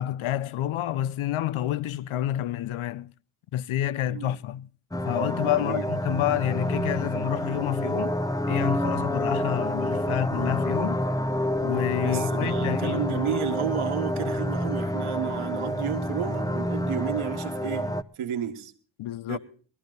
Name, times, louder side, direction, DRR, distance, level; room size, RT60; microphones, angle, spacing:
voice 1, 0.0-3.1 3.5-4.7 5.0-8.1 8.5-11.0 11.6-13.3 19.0-19.4, left 12 dB, 80° left, 0.6 m, -29 dB
sound 1, 4.9-18.0, left 1 dB, 5° left, 0.7 m, -28 dB
voice 2, 12.0-17.9 18.2-18.7 19.3-19.4, right 9 dB, 90° right, 1.5 m, -31 dB
18.0 x 13.5 x 4.0 m
cardioid pair, 50°, 48 cm